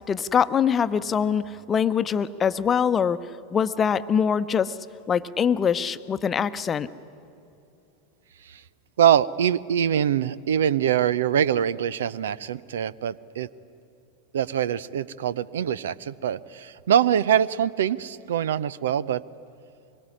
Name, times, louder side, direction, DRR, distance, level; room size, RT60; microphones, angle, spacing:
voice 1, 0.1-3.2 3.5-4.7 5.1-6.9, left 7 dB, 25° left, 12 dB, 0.9 m, -23 dB
voice 2, 9.0-13.5 14.3-19.2, right 9 dB, 70° right, 20 dB, 0.6 m, -24 dB
25.0 x 22.5 x 9.9 m, 2.7 s
figure-of-eight pair, 85°, 0 cm